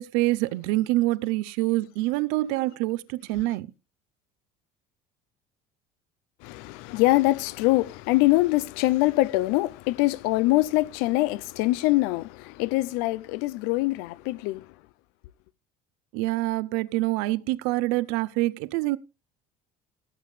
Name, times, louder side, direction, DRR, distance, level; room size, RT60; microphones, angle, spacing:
voice 1, 0.0-3.7 16.1-19.0, right 18 dB, 90° right, 0.6 m, -26 dB
voice 2, 6.4-14.7, left 19 dB, 85° left, 0.5 m, -24 dB
17.0 x 8.4 x 3.2 m
cardioid pair, 180°, 16 cm